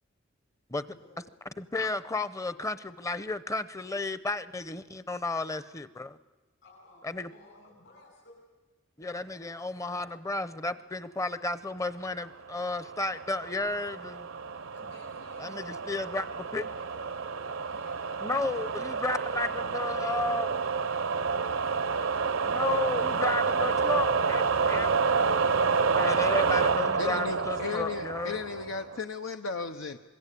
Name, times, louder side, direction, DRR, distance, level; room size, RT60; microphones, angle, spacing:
voice 1, 0.8-1.3 6.6-8.4 14.7-17.1 17.6-23.3 25.7-27.8, left 1 dB, 65° left, -3 dB, 6.1 m, -57 dB
voice 2, 1.6-6.2 7.0-7.3 9.0-14.3 15.4-16.7 18.2-20.6 22.5-25.0 25.9-28.4, left 2 dB, 15° left, 14 dB, 0.8 m, -33 dB
sound 1, 12.5-29.0, right 5 dB, 75° right, 0.8 m, -29 dB
voice 3, 27.0-30.0, left 4 dB, 85° left, 6 dB, 1.0 m, -35 dB
25.0 x 22.0 x 8.5 m, 1.2 s
head